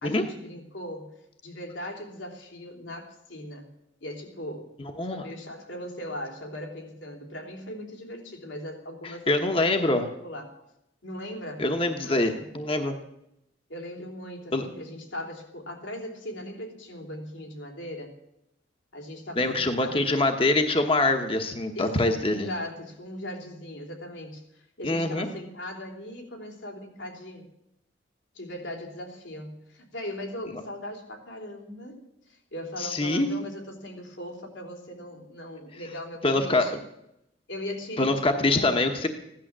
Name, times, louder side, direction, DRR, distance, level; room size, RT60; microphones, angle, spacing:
voice 1, 0.0-1.1 1.4-3.7 4.0-4.7 5.0-10.6 11.0-11.6 12.0-12.4 13.7-18.1 18.9-20.1 21.7-22.0 22.3-27.5 28.3-32.0 32.3-36.8 37.5-38.8, left 1 dB, 85° left, 2 dB, 3.5 m, -39 dB
voice 2, 9.3-10.1 11.6-13.0 14.5-14.7 19.4-22.5 24.8-25.3 32.8-33.4 36.2-36.8 38.0-39.1, left 2 dB, 30° left, 5 dB, 1.1 m, -24 dB
16.0 x 11.5 x 7.4 m, 0.83 s
head